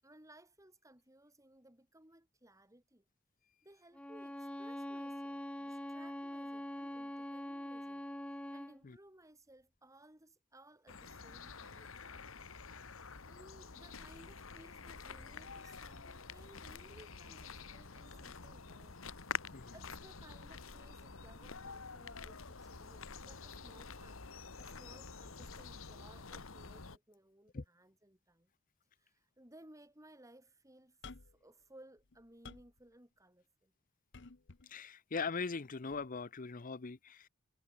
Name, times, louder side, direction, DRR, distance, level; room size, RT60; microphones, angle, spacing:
voice 1, 0.0-3.0 3.6-8.0 8.5-12.0 13.3-19.0 19.7-28.5 29.0-33.7, right 1 dB, 15° right, 6.4 m, -61 dB
Bowed string instrument, 3.9-8.8, left 1 dB, 5° left, 0.5 m, -43 dB
sound 1, 10.9-27.0, left 5 dB, 80° left, 1.8 m, -48 dB
sound 2, 31.0-31.5 32.0-32.8 34.1-34.7 35.9-36.1, left 4 dB, 60° left, 1.1 m, -53 dB
voice 2, 34.7-37.3, left 4 dB, 40° left, 0.7 m, -40 dB
head